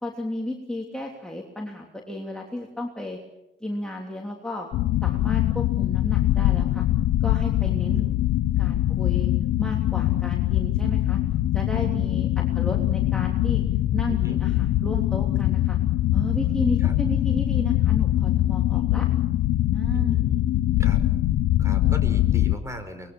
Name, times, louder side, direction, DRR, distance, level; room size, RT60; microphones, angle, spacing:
voice 1, 0.0-3.2 3.6-4.7 5.0-6.9 7.2-8.1 8.6-9.3 9.6-11.2 11.5-13.6 13.9-15.8 16.1-19.1 19.7-20.2, left 1 dB, 5° left, -1 dB, 3.1 m, -33 dB
sound 1, 4.7-22.6, left 14 dB, 80° left, 0.8 m, -23 dB
voice 2, 14.1-14.4 16.8-16.9 20.0-20.5 20.8-21.0 21.6-23.1, equal, 15° right, 8 dB, 5.1 m, -39 dB
24.0 x 21.0 x 7.2 m, 0.91 s
cardioid pair, 90°, 20 cm